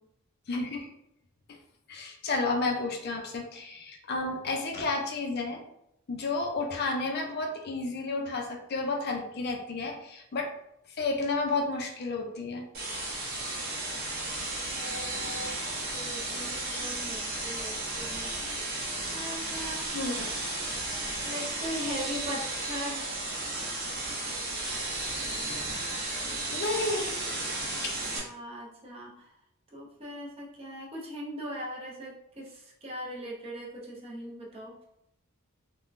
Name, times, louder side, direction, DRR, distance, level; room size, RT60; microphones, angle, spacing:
voice 1, 0.5-1.0 1.5-1.6 1.9-5.6 6.1-10.5 10.9-12.7 19.9-20.3 26.5-27.1 27.8-28.0, left 3 dB, 50° left, 2 dB, 0.4 m, -31 dB
sound 1, 12.7-28.2, right 2 dB, 45° right, 1.0 m, -34 dB
voice 2, 14.7-15.6 15.9-18.3 19.1-19.9 21.2-23.2 27.9-29.3 29.7-34.8, equal, 25° right, -3 dB, 0.6 m, -40 dB
3.5 x 2.1 x 2.5 m, 0.80 s
head